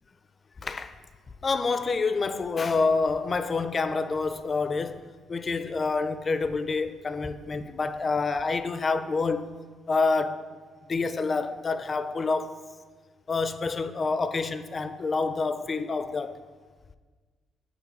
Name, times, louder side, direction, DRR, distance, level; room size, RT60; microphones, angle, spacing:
voice 1, 0.6-1.0 1.4-9.6 9.9-10.4 10.9-12.6 13.3-16.4, left 4 dB, 40° left, 0.4 m, -27 dB
5.7 x 4.1 x 4.2 m
supercardioid pair, 60°, 0 cm